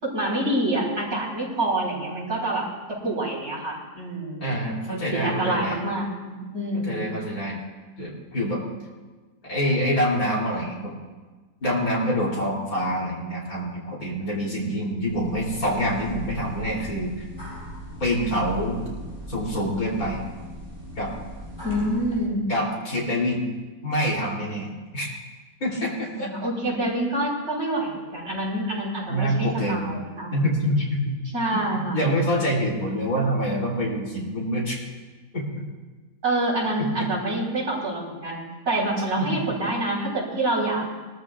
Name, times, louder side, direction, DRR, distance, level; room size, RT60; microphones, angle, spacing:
voice 1, 0.0-4.4 5.1-7.2 21.6-22.5 26.2-30.3 31.3-32.0 36.2-38.4 38.7-40.8, right 1 dB, 85° right, -5 dB, 4.6 m, -27 dB
voice 2, 4.4-5.8 6.8-7.6 8.0-8.6 9.5-10.9 11.6-17.3 18.0-18.8 19.3-20.2 21.0-21.1 22.5-23.4 23.8-25.1 25.6-26.5 29.1-29.9 30.3-31.2 31.5-34.8 35.3-35.7 36.8-37.1 39.2-39.4, equal, 70° left, -3 dB, 3.7 m, -26 dB
sound 1, 15.0-22.3, right 1 dB, 15° right, 5.5 m, -38 dB
23.5 x 13.5 x 2.4 m, 1.3 s
omnidirectional pair, 1.6 m